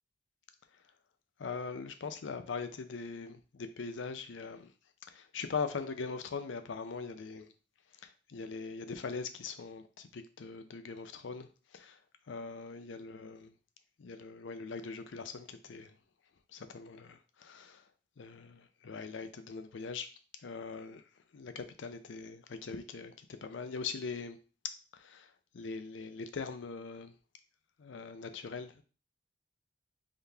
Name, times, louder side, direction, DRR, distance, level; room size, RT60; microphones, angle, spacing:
voice 1, 1.4-4.7 5.1-7.5 8.0-12.0 12.3-13.5 14.0-16.0 16.5-17.8 18.2-20.1 20.4-21.1 21.3-24.4 24.9-27.1 27.8-28.8, left 5 dB, 70° left, 0.5 m, -41 dB
3.8 x 2.7 x 3.4 m
head